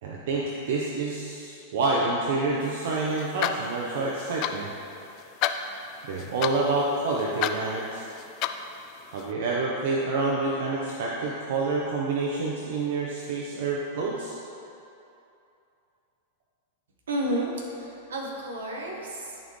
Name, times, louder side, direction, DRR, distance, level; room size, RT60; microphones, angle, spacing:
voice 1, 0.0-4.7 6.1-8.1 9.1-14.3, right 3 dB, 70° right, -3 dB, 0.9 m, -28 dB
sound 1, 2.6-9.3, left 9 dB, 45° left, 0.4 m, -34 dB
voice 2, 17.1-19.4, right 1 dB, 85° right, -2 dB, 1.5 m, -31 dB
12.5 x 4.4 x 3.2 m, 2.8 s
hypercardioid pair, 115°, 0 cm